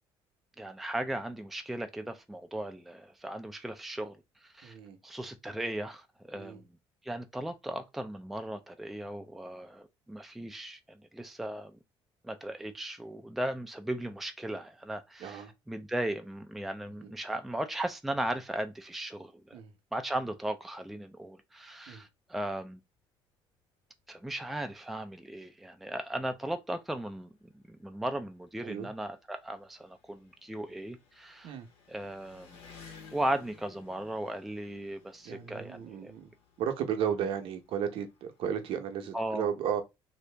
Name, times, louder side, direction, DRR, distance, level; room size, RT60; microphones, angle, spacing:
voice 1, 0.6-4.2 4.4-4.7 5.0-6.7 7.0-11.8 12.2-19.6 19.9-22.8 24.1-31.5 31.9-32.6 33.1-36.1 39.1-39.5, right 1 dB, ahead, 0.3 m, -37 dB
voice 2, 4.6-5.0 6.3-6.6 15.2-15.5 17.0-17.1 19.5-19.7 21.9-22.0 28.6-28.9 31.4-31.7 35.2-36.3 36.6-39.8, right 8 dB, 70° right, 0.7 m, -34 dB
Engine, 25.8-25.9 26.0-38.8, left 6 dB, 85° left, 1.3 m, -58 dB
2.8 x 2.6 x 3.3 m
cardioid pair, 130°, 10 cm